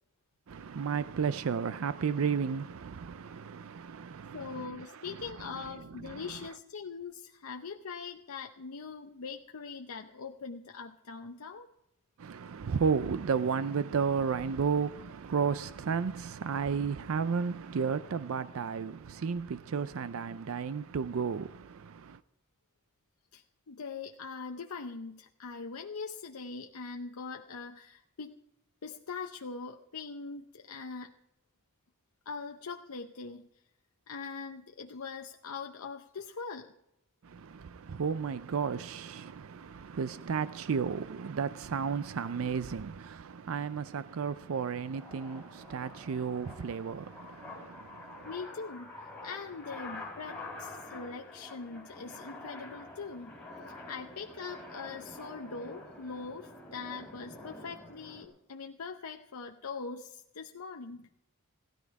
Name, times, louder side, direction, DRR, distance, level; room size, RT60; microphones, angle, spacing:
voice 1, 0.5-5.5 6.1-6.3 12.2-22.2 37.2-48.3, right 6 dB, 70° right, 0.4 m, -33 dB
voice 2, 4.3-11.7 23.3-28.4 28.8-31.1 32.3-33.5 34.1-36.7 48.3-48.9 49.2-53.4 53.7-61.1, left 5 dB, 85° left, 0.7 m, -42 dB
sound 1, 43.1-58.3, left 2 dB, 5° left, 4.3 m, -47 dB
16.0 x 13.0 x 4.7 m
head